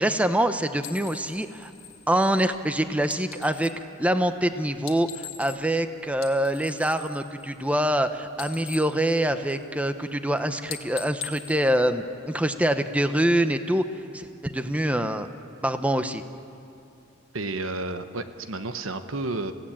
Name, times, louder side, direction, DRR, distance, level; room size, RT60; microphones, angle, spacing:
voice 1, 0.0-1.7 2.1-3.7 4.0-15.3 15.6-16.2, right 1 dB, 5° right, 9 dB, 0.7 m, -25 dB
sound 1, 0.8-3.8 4.7-5.8 6.1-8.0 8.3-9.8 10.2-10.4 10.7-12.5, left 9 dB, 80° left, 1.6 m, -42 dB
voice 2, 17.3-19.5, right 2 dB, 75° right, 9 dB, 1.1 m, -31 dB
28.5 x 16.5 x 8.7 m, 2.6 s
head